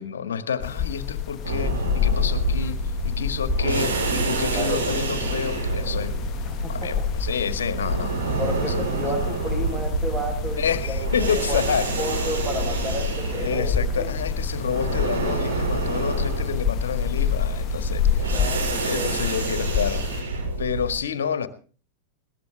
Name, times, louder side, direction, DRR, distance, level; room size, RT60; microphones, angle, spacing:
voice 1, 0.0-2.8 3.0-6.2 6.7-8.3 8.6-8.8 10.6-12.3 13.4-18.3 18.8-20.0 20.6-21.5, left 7 dB, 70° left, 11 dB, 1.8 m, -29 dB
sound 1, 0.6-20.2, left 9 dB, 35° left, 1.0 m, -29 dB
sound 2, 1.4-21.0, right 3 dB, 70° right, 5.9 m, -28 dB
voice 2, 6.4-6.9 8.4-14.1 18.1-19.1, equal, 10° right, -2 dB, 6.8 m, -32 dB
21.0 x 18.0 x 3.4 m, 0.39 s
figure-of-eight pair, 90°, 0 cm